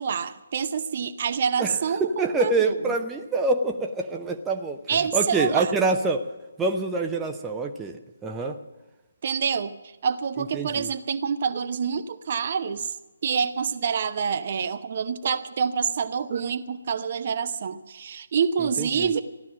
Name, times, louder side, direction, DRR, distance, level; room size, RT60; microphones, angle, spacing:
voice 1, 0.0-2.9 4.9-5.7 9.2-9.7 10.0-12.9 13.2-19.2, right 6 dB, 40° right, 10 dB, 0.7 m, -27 dB
voice 2, 1.6-6.2 6.6-8.6 10.4-10.9 18.6-19.1, right 3 dB, 10° right, 3 dB, 0.7 m, -26 dB
15.0 x 12.0 x 7.5 m, 1.1 s
figure-of-eight pair, 140°, 0 cm